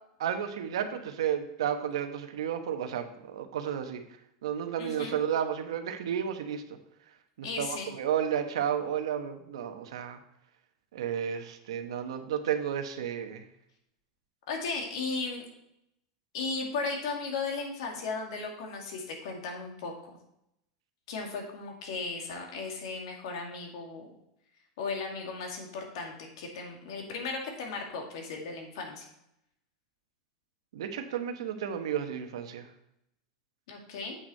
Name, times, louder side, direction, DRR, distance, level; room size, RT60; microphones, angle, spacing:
voice 1, 0.2-4.0 4.4-6.6 7.4-10.2 10.9-13.5 30.7-32.7, right 9 dB, 90° right, 7 dB, 1.1 m, -32 dB
voice 2, 4.8-5.2 7.4-7.9 14.5-15.4 16.3-19.9 21.1-24.1 24.8-29.1 33.7-34.2, left 4 dB, 75° left, 1 dB, 2.2 m, -36 dB
8.2 x 6.3 x 4.4 m, 0.79 s
supercardioid pair, 135°, 3 cm